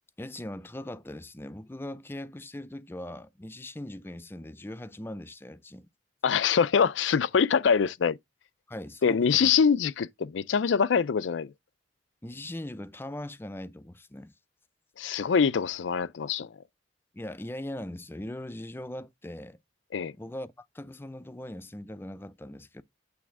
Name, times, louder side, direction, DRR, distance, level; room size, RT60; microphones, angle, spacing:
voice 1, 0.2-5.9 8.7-9.5 12.2-14.3 17.1-19.6 20.2-22.8, left 1 dB, 15° left, 0.4 m, -40 dB
voice 2, 6.2-8.2 9.0-11.5 15.0-16.5 19.9-20.1, left 6 dB, 90° left, 0.4 m, -24 dB
8.4 x 3.4 x 4.7 m
head